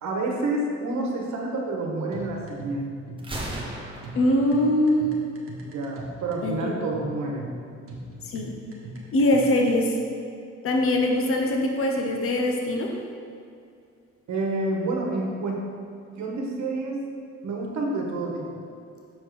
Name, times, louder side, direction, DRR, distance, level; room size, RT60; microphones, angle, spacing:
voice 1, 0.0-2.9 5.6-7.5 14.3-15.6 16.1-17.0 17.4-18.6, right 2 dB, 70° right, 0 dB, 1.3 m, -29 dB
sound 1, 2.1-9.7, right 1 dB, 45° right, 1.5 m, -40 dB
Gunshot gunfire, 3.2-5.2, right 1 dB, 15° right, 1.3 m, -37 dB
voice 2, 4.1-5.1 6.4-6.8 8.2-8.5 9.1-10.0 10.6-12.9, left 1 dB, 45° left, 1 dB, 1.0 m, -22 dB
6.9 x 4.6 x 4.9 m, 2.4 s
cardioid pair, 90°, 30 cm